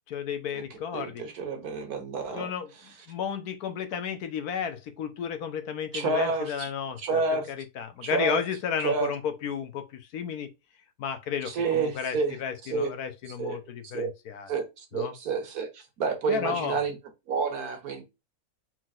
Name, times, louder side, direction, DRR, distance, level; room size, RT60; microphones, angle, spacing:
voice 1, 0.1-1.2 2.3-2.7 3.1-10.5 11.0-14.5 14.9-15.1 16.3-16.8, left 7 dB, 75° left, 1.3 m, -33 dB
voice 2, 0.9-2.5 5.9-6.7 7.0-7.5 8.0-8.4 8.8-9.1 11.5-12.4 12.6-12.9 13.4-13.6 13.9-14.1 14.5-17.0 17.3-18.0, right 4 dB, 80° right, 1.7 m, -29 dB
4.5 x 3.9 x 2.4 m
omnidirectional pair, 1.6 m